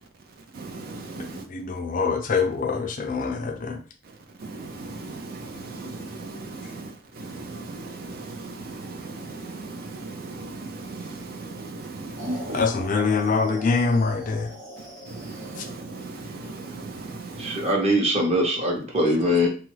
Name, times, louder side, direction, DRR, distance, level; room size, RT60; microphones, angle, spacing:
voice 1, 0.5-1.5 4.4-12.6 14.8-17.7, right 3 dB, 50° right, 0.4 m, -37 dB
voice 2, 1.2-3.8 12.5-14.5 15.6-15.7, left 4 dB, 45° left, 0.4 m, -25 dB
sound 1, 12.2-16.1, equal, 75° right, 1.0 m, -38 dB
voice 3, 17.4-19.5, equal, 35° right, 0.8 m, -22 dB
2.9 x 2.3 x 3.2 m
head